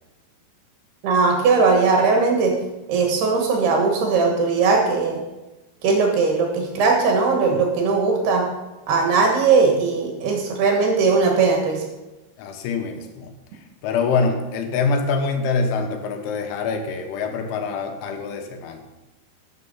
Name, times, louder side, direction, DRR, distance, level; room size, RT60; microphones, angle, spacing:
voice 1, 1.0-2.5 2.9-5.2 5.8-8.5 8.9-11.8, right 4 dB, 65° right, 2 dB, 3.1 m, -19 dB
voice 2, 12.4-13.3 13.8-18.8, left 4 dB, 75° left, 5 dB, 3.3 m, -24 dB
12.5 x 7.3 x 5.5 m, 1.1 s
omnidirectional pair, 5.7 m